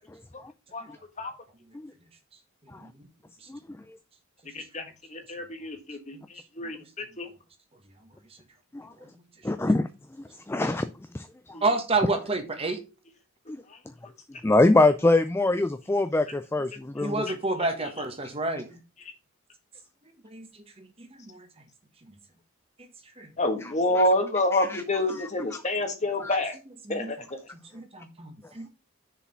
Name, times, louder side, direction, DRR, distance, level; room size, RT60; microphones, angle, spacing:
voice 1, 4.5-4.8 5.1-7.3 11.5-11.8 17.3-18.1 23.4-26.6 26.9-27.2, left 1 dB, 30° left, 6 dB, 1.5 m, -28 dB
voice 2, 9.4-9.9 10.5-10.9 11.1-11.5 13.5-13.6 14.4-17.2 24.5-24.8 26.2-26.4, left 2 dB, 10° left, 11 dB, 0.3 m, -23 dB
voice 3, 11.6-12.8 17.0-18.8 20.3-20.5 20.8-21.5 23.2-23.3 26.9-27.1 27.7-28.7, right 3 dB, 25° right, 6 dB, 1.3 m, -29 dB
6.7 x 4.9 x 5.8 m, 0.29 s
head